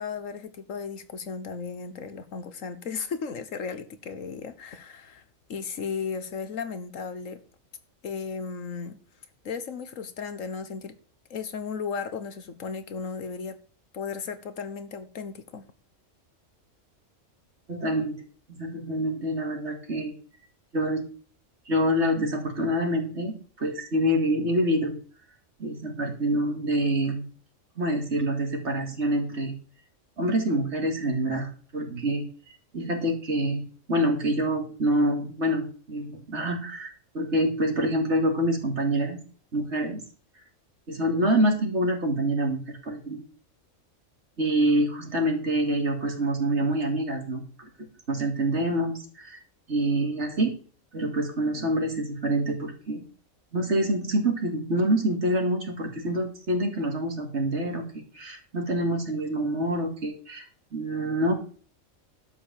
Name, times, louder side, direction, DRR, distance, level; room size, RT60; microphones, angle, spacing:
voice 1, 0.0-5.2 5.5-7.4 8.0-9.0 9.4-10.9 11.3-13.6 13.9-15.6, left 5 dB, 80° left, 1.6 m, -35 dB
voice 2, 17.7-18.2 18.5-20.1 20.7-21.0 21.7-25.0 25.6-27.2 27.8-29.5 30.2-32.3 32.7-33.6 33.9-39.2 39.5-40.0 40.9-43.2 44.4-47.7 48.1-49.4 49.7-50.6 50.9-53.1 53.5-57.9 58.1-61.3, right 1 dB, 60° right, 2.8 m, -26 dB
11.5 x 5.0 x 7.5 m
omnidirectional pair, 1.3 m